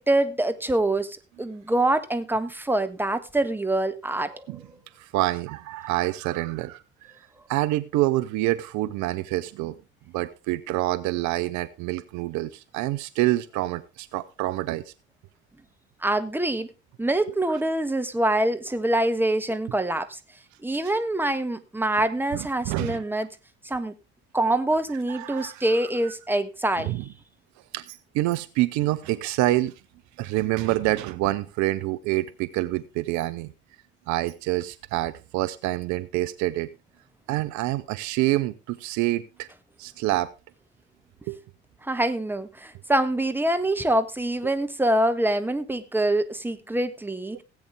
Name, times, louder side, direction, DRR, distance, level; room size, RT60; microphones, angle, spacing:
voice 1, 0.0-4.6 16.0-16.7 17.0-20.2 20.6-23.3 23.6-23.9 24.3-27.0 41.8-47.4, right 1 dB, 5° right, 9 dB, 1.4 m, -25 dB
voice 2, 5.0-6.8 7.5-9.8 10.1-14.8 22.3-23.0 25.1-25.6 26.1-26.2 26.8-27.0 27.7-29.7 30.2-33.5 34.1-36.7 37.3-39.5 39.8-40.3 41.3-41.4, right 17 dB, 60° right, 14 dB, 0.7 m, -27 dB
17.0 x 8.5 x 3.5 m, 0.29 s
figure-of-eight pair, 50°, 32 cm